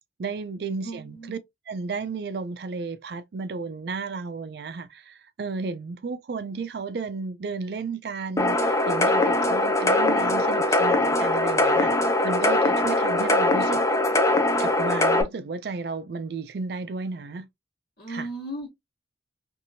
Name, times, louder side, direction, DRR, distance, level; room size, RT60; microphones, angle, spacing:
voice 1, 0.2-1.4 1.7-13.8 14.6-17.5 18.1-18.3, right 4 dB, 60° right, 0.4 m, -33 dB
voice 2, 0.8-1.4 18.0-18.7, right 1 dB, 55° left, 1.3 m, -36 dB
sound 1, 8.4-15.2, left 2 dB, 15° left, 0.5 m, -22 dB
2.8 x 2.6 x 2.7 m
head